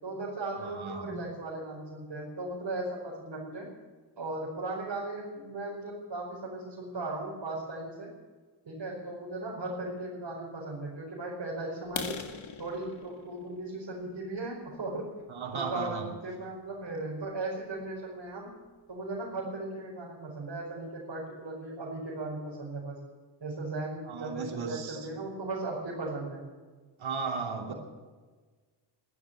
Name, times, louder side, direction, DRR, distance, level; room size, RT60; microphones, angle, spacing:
voice 1, 0.0-3.7 4.2-8.1 8.7-12.2 12.6-15.1 15.5-18.5 18.9-23.0 23.4-26.4 27.7-27.8, right 2 dB, 60° right, -4 dB, 5.2 m, -37 dB
voice 2, 0.6-1.2 15.3-16.1 24.0-25.1 27.0-27.7, right 5 dB, 90° right, 2 dB, 2.8 m, -35 dB
sound 1, 11.8-15.6 16.1-16.3 16.8-16.9 17.3-17.5 17.8-17.9 18.3-18.4 18.7-19.2, left 6 dB, 75° left, 1.9 m, -42 dB
15.0 x 12.5 x 7.6 m, 1.4 s
cardioid pair, 70°, 47 cm